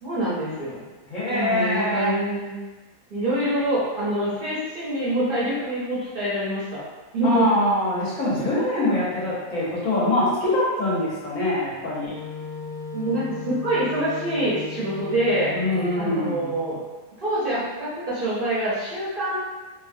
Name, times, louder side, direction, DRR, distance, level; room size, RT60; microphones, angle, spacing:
voice 1, 0.0-0.8 1.3-2.6 3.1-6.8 7.1-7.5 12.9-15.5 15.9-16.8 17.2-19.4, right 1 dB, 50° right, -10 dB, 0.8 m, -25 dB
voice 2, 1.1-2.1 7.2-12.1 15.5-16.5, left 1 dB, 65° left, -8 dB, 1.3 m, -24 dB
Wind instrument woodwind instrument, 12.1-16.7, left 5 dB, 40° left, 1.1 m, -37 dB
3.0 x 2.2 x 2.5 m, 1.2 s
omnidirectional pair, 1.5 m